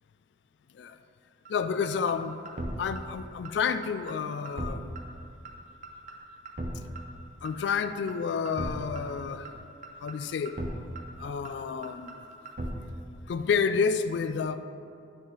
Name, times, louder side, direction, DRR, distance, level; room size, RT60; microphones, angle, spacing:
voice 1, 1.5-2.4 2.8-4.9 7.4-9.5 10.0-10.6 11.2-12.2 13.3-14.6, left 6 dB, 65° left, 11 dB, 0.3 m, -30 dB
sound 1, 1.5-1.6 1.8-2.1 2.5-2.7 3.0-3.1 3.5-3.6 3.8-4.1 4.5-4.7 5.0-5.1 5.5-5.6 5.8-6.1 6.5-6.7 7.0-7.1 7.5-7.6 7.8-8.1 8.5-8.7 9.0-9.1 9.5-9.6 9.8-10.1 10.5-10.7 11.0-11.1 11.5-11.6 11.8-12.1 12.5-12.7, right 2 dB, 40° right, 0.7 m, -36 dB
11.0 x 3.9 x 3.8 m, 2.5 s
head